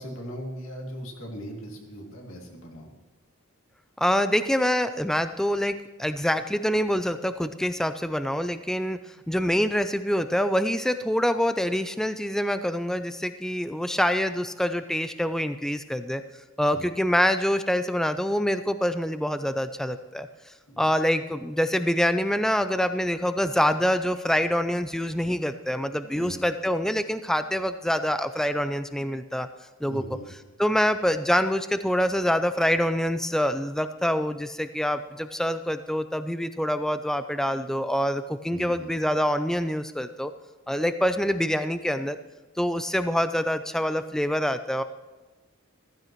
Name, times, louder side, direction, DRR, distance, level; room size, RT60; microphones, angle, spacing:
voice 1, 0.0-2.9 16.7-17.0 20.7-20.9 26.1-26.4 29.8-30.2 38.5-38.9, equal, 70° left, 0 dB, 2.5 m, -39 dB
voice 2, 4.0-16.2 16.6-29.5 29.8-30.0 30.6-40.3 40.7-42.2 42.6-44.8, equal, ahead, 10 dB, 0.3 m, -25 dB
15.0 x 14.5 x 3.1 m, 1.3 s
head